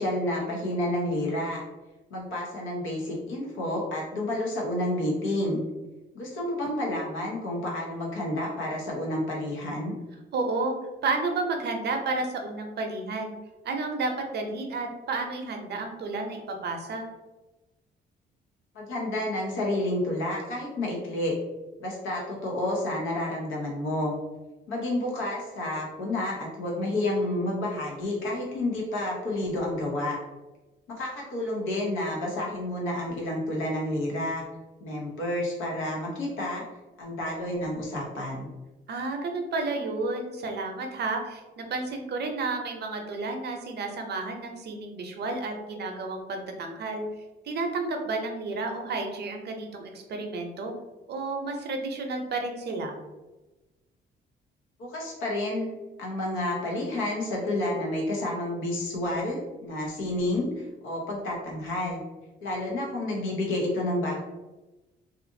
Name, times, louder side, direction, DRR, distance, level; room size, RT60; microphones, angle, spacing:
voice 1, 0.0-1.6 2.1-5.6 6.1-9.9 18.7-21.3 21.8-24.1 24.7-30.2 30.9-34.4 34.8-36.6 37.0-38.5 54.8-55.7 56.0-62.0 62.4-64.2, left 1 dB, 85° left, -2 dB, 0.9 m, -30 dB
voice 2, 10.3-10.8 11.0-13.3 13.6-17.1 38.9-47.0 47.4-50.7 51.1-53.0, right 3 dB, 55° right, 4 dB, 0.6 m, -31 dB
2.6 x 2.5 x 2.6 m, 1.1 s
cardioid pair, 90°, 20 cm